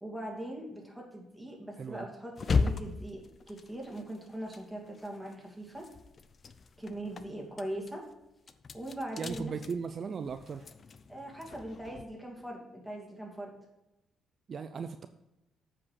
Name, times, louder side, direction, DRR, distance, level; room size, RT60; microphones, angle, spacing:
voice 1, 0.0-3.2 3.5-5.9 6.8-8.0 8.7-9.5 11.1-13.5, right 1 dB, 5° right, -1 dB, 2.5 m, -41 dB
sound 1, 2.4-5.3 5.7-12.1, left 4 dB, 45° left, 0.6 m, -37 dB
voice 2, 9.2-10.6 14.5-15.1, right 5 dB, 50° right, 9 dB, 0.5 m, -37 dB
8.6 x 5.1 x 6.5 m, 0.95 s
cardioid pair, 90°, 0 cm